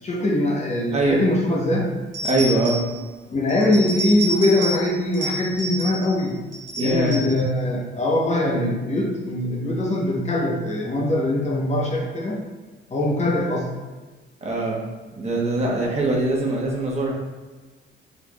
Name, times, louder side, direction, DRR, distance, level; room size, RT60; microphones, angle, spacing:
voice 1, 0.0-1.9 3.3-6.4 6.8-12.4 12.9-13.7, left 1 dB, 35° left, -2 dB, 0.9 m, -22 dB
sound 1, 2.1-3.0 3.5-4.9 5.1-6.2 6.5-7.4, right 1 dB, 65° right, 1.3 m, -30 dB
voice 2, 2.2-2.8 6.8-7.2 14.4-14.8 15.2-17.1, right 2 dB, 35° right, -3 dB, 1.1 m, -22 dB
4.5 x 3.9 x 2.4 m, 1.3 s
cardioid pair, 90°, 20 cm